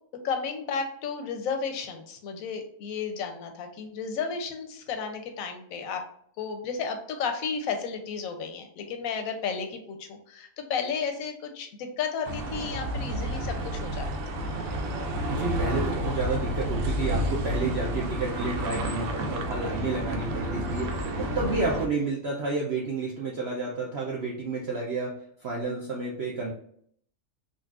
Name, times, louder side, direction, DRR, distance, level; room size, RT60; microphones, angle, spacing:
voice 1, 0.2-6.0 6.4-14.1, left 5 dB, 70° left, 5 dB, 0.9 m, -33 dB
sound 1, 12.2-21.9, right 1 dB, 90° right, 1.1 m, -30 dB
voice 2, 15.3-26.5, right 3 dB, 70° right, -3 dB, 0.6 m, -30 dB
3.9 x 2.3 x 2.4 m, 0.64 s
omnidirectional pair, 1.7 m